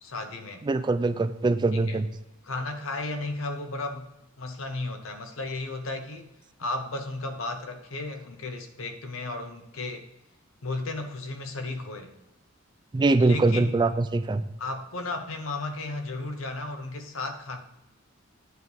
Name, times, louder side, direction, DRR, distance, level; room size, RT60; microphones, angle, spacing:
voice 1, 0.0-0.7 1.7-2.0 2.4-4.1 4.4-6.3 6.6-10.1 10.6-12.1 13.2-13.7 14.6-17.6, left 2 dB, 85° left, 7 dB, 0.9 m, -34 dB
voice 2, 0.6-2.1 12.9-14.4, right 3 dB, 20° right, 11 dB, 0.3 m, -23 dB
9.5 x 3.5 x 6.2 m, 0.90 s
head